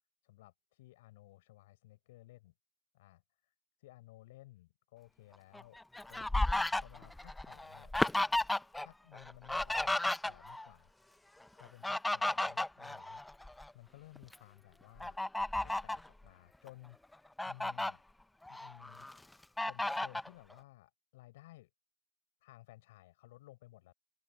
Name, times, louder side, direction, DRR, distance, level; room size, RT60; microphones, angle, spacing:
voice 1, 0.2-2.5 2.9-5.8 6.1-6.3 6.7-7.9 8.8-10.9 11.5-13.3 13.7-15.2 15.6-18.0 18.5-19.1 19.7-21.7 22.4-23.9, left 17 dB, 90° left, 5.6 m, -57 dB
Fowl, 5.5-8.9 9.1-10.7 11.6-13.7 14.2-14.3 15.0-16.1 16.7-16.8 17.1-17.9 18.4-19.1 19.6-20.3, left 1 dB, 10° left, 0.8 m, -34 dB
open air
hypercardioid pair, 75°, 0 cm